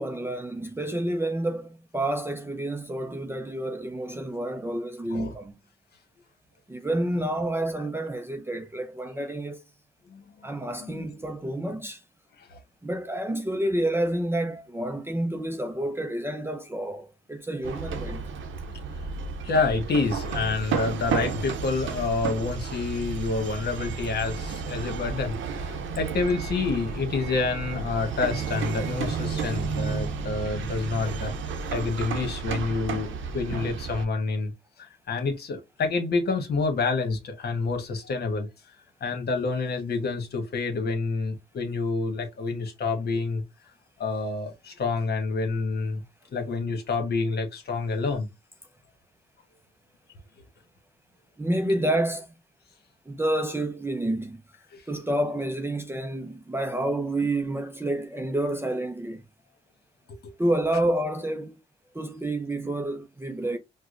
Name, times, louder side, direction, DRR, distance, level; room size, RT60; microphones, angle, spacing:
voice 1, 0.0-5.6 6.7-9.6 10.4-12.0 12.8-18.2 51.4-52.3 53.1-54.4 54.9-59.2 60.4-61.6 61.9-63.6, right 1 dB, 10° right, 0.5 m, -29 dB
sound 1, 17.6-34.1, right 5 dB, 75° right, 0.7 m, -32 dB
voice 2, 19.4-31.3 31.7-33.1 33.3-34.5 35.1-38.5 39.0-43.4 44.0-46.0 46.3-48.3 54.7-54.8, left 4 dB, 55° left, 1.3 m, -28 dB
4.8 x 2.2 x 2.5 m
cardioid pair, 90°, 20 cm